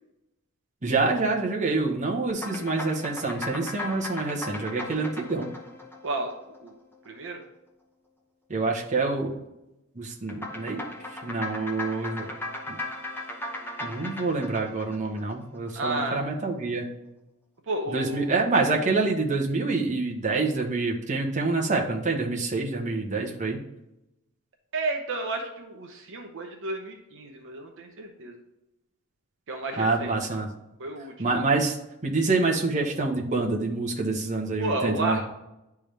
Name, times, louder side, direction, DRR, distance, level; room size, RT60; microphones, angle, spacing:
voice 1, 0.8-5.5 8.5-9.3 9.9-10.8 11.2-12.3 12.7-12.8 13.8-16.9 17.9-23.6 29.8-30.5 31.2-31.8 32.0-35.2, right 3 dB, 35° right, -1 dB, 1.1 m, -26 dB
sound 1, 2.3-7.0 10.3-15.7, left 2 dB, 10° left, 0.8 m, -37 dB
voice 2, 6.0-6.3 6.6-6.7 7.0-7.4 15.7-16.2 17.7-18.3 24.7-28.3 29.5-30.4 30.8-31.1 34.6-35.2, right 2 dB, 60° right, 2 dB, 0.8 m, -32 dB
10.5 x 3.5 x 3.4 m, 0.91 s
head